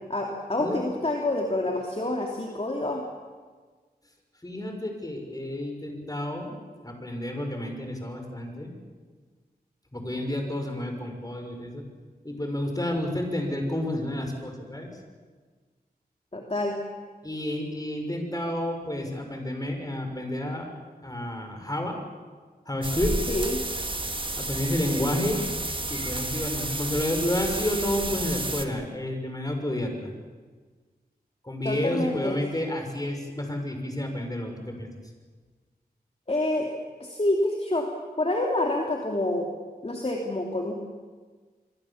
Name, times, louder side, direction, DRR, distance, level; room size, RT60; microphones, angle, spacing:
voice 1, 0.1-3.0 16.3-16.8 23.3-23.6 31.6-32.4 36.3-36.7 37.0-37.9 38.2-39.5 39.8-40.7, left 1 dB, 40° left, 1 dB, 2.7 m, -27 dB
voice 2, 4.4-6.6 6.8-8.7 9.9-11.8 12.2-15.0 17.2-20.7 21.0-22.0 22.7-23.2 24.4-25.4 25.9-30.1 31.4-34.9, left 1 dB, 20° left, 4 dB, 5.8 m, -30 dB
sound 1, 22.8-28.6, right 2 dB, 30° right, 1.8 m, -31 dB
27.0 x 23.0 x 7.3 m, 1.4 s
wide cardioid pair, 65°, 17 cm